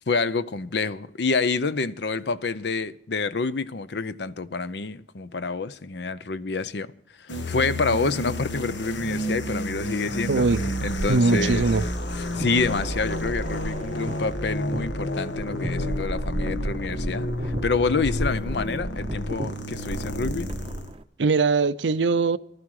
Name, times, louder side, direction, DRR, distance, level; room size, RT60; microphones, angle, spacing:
voice 1, 0.1-6.9 7.2-10.5 10.8-11.7 12.3-20.5, left 4 dB, 70° left, 0.6 m, -28 dB
sound 1, 7.3-20.9, left 1 dB, 85° left, 1.5 m, -31 dB
voice 2, 10.3-11.8 21.2-22.4, right 4 dB, 90° right, 0.6 m, -22 dB
sound 2, 10.5-21.0, right 1 dB, 30° right, 0.6 m, -34 dB
15.5 x 13.0 x 4.8 m
head